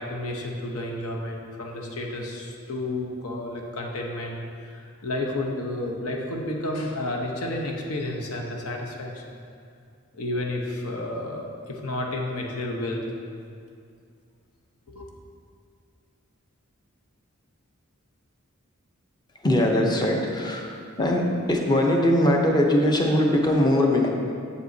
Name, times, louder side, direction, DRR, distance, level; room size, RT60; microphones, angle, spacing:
voice 1, 0.0-9.4 10.1-13.0 14.9-15.1, left 1 dB, 75° left, 0 dB, 0.8 m, -31 dB
voice 2, 19.4-21.2 21.5-24.1, left 1 dB, 20° left, 1 dB, 0.7 m, -21 dB
7.9 x 6.8 x 2.7 m, 2.3 s
head